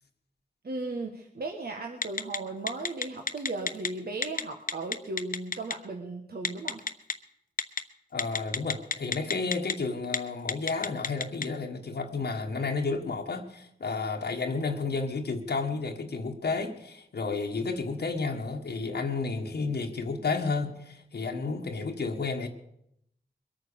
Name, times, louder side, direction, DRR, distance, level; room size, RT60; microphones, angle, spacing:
voice 1, 0.6-6.8, right 2 dB, 70° right, 3 dB, 1.6 m, -36 dB
Telephone, 2.0-2.4 2.7-3.9 4.2-4.4 4.7-5.7 6.4-7.1 7.6-7.8 8.2-9.7 10.0-10.2 10.5-11.4, left 5 dB, 55° left, 1.0 m, -28 dB
voice 2, 8.1-22.5, left 4 dB, 85° left, 2 dB, 1.5 m, -31 dB
22.0 x 9.1 x 7.0 m, 0.77 s
wide cardioid pair, 75°, 17 cm